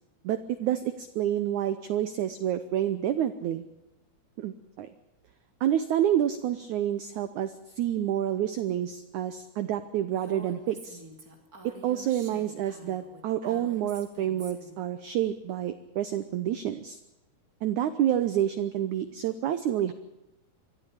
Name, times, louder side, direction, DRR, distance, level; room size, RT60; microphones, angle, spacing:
voice 1, 0.2-3.7 4.4-4.9 5.6-11.0 11.6-17.0 17.6-19.9, right 11 dB, 80° right, 11 dB, 1.7 m, -28 dB
Female speech woman speaking, 10.1-14.8, right 1 dB, 25° right, 2.6 m, -47 dB
23.5 x 14.0 x 9.9 m, 0.94 s
omnidirectional pair, 4.7 m